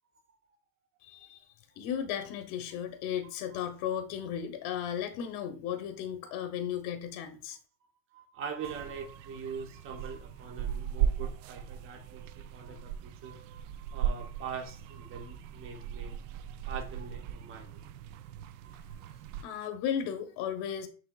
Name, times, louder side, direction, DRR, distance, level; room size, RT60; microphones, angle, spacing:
voice 1, 1.0-1.4 1.8-7.6 19.4-20.9, left 9 dB, 45° left, 0.8 m, -35 dB
voice 2, 7.8-17.8 18.4-19.4, right 6 dB, 25° right, 0.9 m, -43 dB
sound 1, 8.7-19.4, right 9 dB, 55° right, 0.5 m, -37 dB
6.1 x 3.1 x 2.3 m
hypercardioid pair, 115°, 46 cm